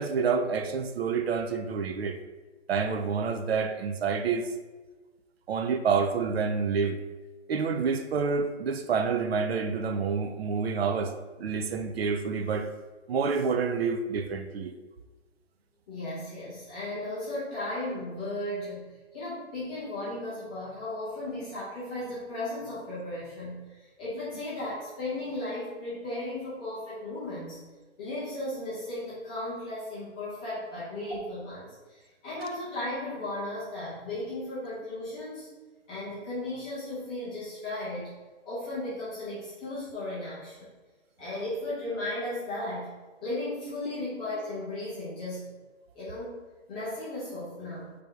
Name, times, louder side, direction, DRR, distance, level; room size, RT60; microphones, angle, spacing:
voice 1, 0.0-2.2 2.7-4.5 5.5-7.0 7.5-11.1 11.4-12.7 13.1-14.7, right 5 dB, 60° right, 8 dB, 0.5 m, -28 dB
voice 2, 15.9-18.8 19.1-27.6 28.0-35.5 35.9-38.1 38.4-40.7 41.2-42.9 43.2-45.5 45.9-46.4 46.7-47.9, left 1 dB, 5° left, -12 dB, 0.4 m, -35 dB
3.4 x 3.2 x 4.8 m, 1.3 s
hypercardioid pair, 155°, 36 cm